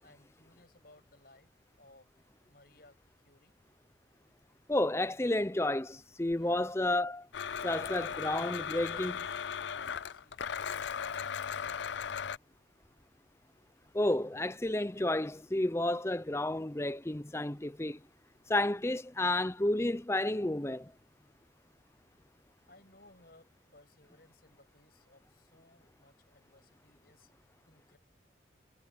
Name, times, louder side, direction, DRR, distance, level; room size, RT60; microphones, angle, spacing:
voice 1, 0.0-1.5 1.8-2.1 2.5-3.5 4.9-5.2 6.4-6.8 8.0-12.2 22.7-27.3 27.6-28.0, left 2 dB, 50° left, 7.1 m, -61 dB
voice 2, 4.7-7.3 7.6-9.2 13.9-18.0 18.5-20.9, left 1 dB, 15° left, 0.6 m, -31 dB
Domestic sounds home sounds, 7.3-12.4, left 7 dB, 70° left, 0.5 m, -37 dB
head